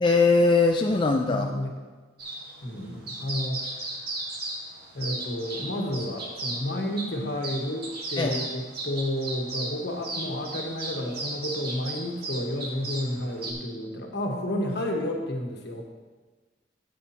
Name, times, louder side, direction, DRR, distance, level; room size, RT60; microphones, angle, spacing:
voice 1, 0.0-1.5 8.2-8.5, left 3 dB, 25° left, 2 dB, 0.4 m, -21 dB
voice 2, 1.2-1.7 2.6-3.7 4.9-15.8, left 1 dB, 65° left, 1 dB, 1.4 m, -31 dB
sound 1, 2.2-13.5, right 2 dB, 55° right, 1.6 m, -36 dB
12.5 x 8.5 x 2.9 m, 1.3 s
head